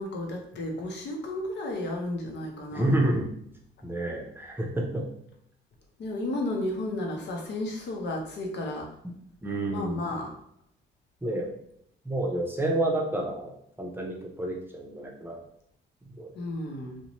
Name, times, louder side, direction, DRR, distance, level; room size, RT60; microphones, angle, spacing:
voice 1, 0.0-2.9 6.0-8.9 9.7-10.3 16.3-17.0, left 1 dB, 60° left, 1 dB, 0.7 m, -33 dB
voice 2, 2.7-3.3 3.8-5.1 9.0-9.1 9.4-10.0 11.2-11.5 12.0-13.5 13.8-15.4 16.0-16.3, right 1 dB, 10° right, -1 dB, 0.6 m, -29 dB
2.5 x 2.1 x 3.0 m, 0.71 s
cardioid pair, 90°, 20 cm